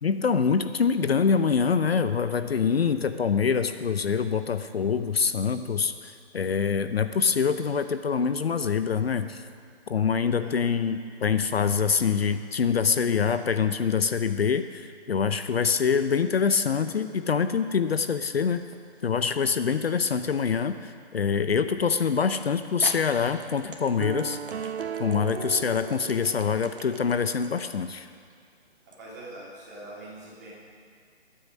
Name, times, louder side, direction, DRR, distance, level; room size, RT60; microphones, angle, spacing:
voice 1, 0.0-9.4 9.9-18.6 19.0-24.7 25.0-28.1, left 6 dB, 65° left, 10 dB, 0.7 m, -25 dB
sound 1, 18.7-19.3 20.1-20.2 22.1-22.2 22.8-29.0, right 4 dB, 55° right, 1.4 m, -43 dB
sound 2, 24.0-27.2, right 8 dB, 70° right, 0.5 m, -36 dB
voice 2, 29.0-30.5, right 2 dB, 15° right, -7 dB, 2.7 m, -43 dB
21.0 x 8.6 x 5.3 m, 2.2 s
hypercardioid pair, 180°, 33 cm